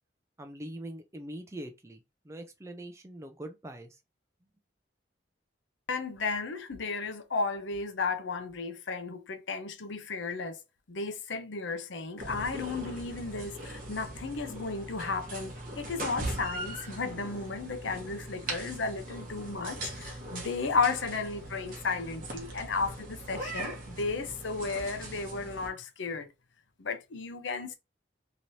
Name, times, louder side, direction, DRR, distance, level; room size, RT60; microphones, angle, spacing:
voice 1, 0.4-4.0, right 1 dB, 15° right, 0.4 m, -43 dB
voice 2, 5.9-10.6 10.9-26.3 26.8-27.7, left 4 dB, 80° left, 0.7 m, -34 dB
sound 1, 12.2-25.7, right 1 dB, 45° right, 1.0 m, -40 dB
3.2 x 2.9 x 2.7 m
head